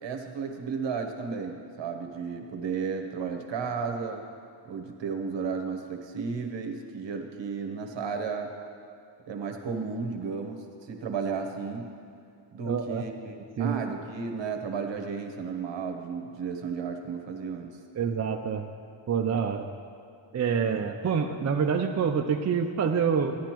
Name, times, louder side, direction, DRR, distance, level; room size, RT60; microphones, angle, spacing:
voice 1, 0.0-4.2 4.6-8.5 9.3-11.9 12.5-17.7, right 5 dB, 60° right, 4 dB, 1.1 m, -33 dB
voice 2, 12.7-13.1 13.6-13.7 17.9-18.6 19.1-19.7 20.3-23.4, right 6 dB, 35° right, 4 dB, 0.4 m, -26 dB
13.0 x 10.0 x 3.0 m, 2.3 s
wide cardioid pair, 110°, 49 cm